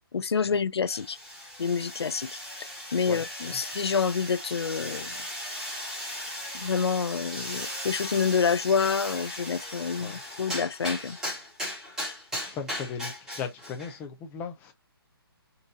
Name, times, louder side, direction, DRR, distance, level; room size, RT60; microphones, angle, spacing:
voice 1, 0.1-1.2 1.6-2.3 2.9-5.2 6.5-11.2, left 6 dB, 90° left, 0.4 m, -27 dB
sound 1, 0.9-14.0, left 1 dB, 5° right, 1.3 m, -37 dB
voice 2, 3.1-3.6 10.0-10.2 12.3-14.7, left 6 dB, 15° left, 0.5 m, -38 dB
4.0 x 2.6 x 2.3 m
figure-of-eight pair, 145°, 13 cm